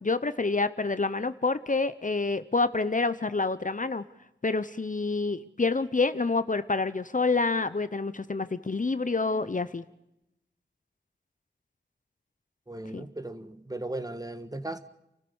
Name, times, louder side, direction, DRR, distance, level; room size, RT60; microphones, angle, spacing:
voice 1, 0.0-4.0 4.4-9.8 12.9-13.1, left 3 dB, 45° left, 13 dB, 0.8 m, -27 dB
voice 2, 12.7-14.8, right 2 dB, 20° right, 10 dB, 1.4 m, -37 dB
29.0 x 14.0 x 7.1 m, 0.88 s
wide cardioid pair, 65°, 19 cm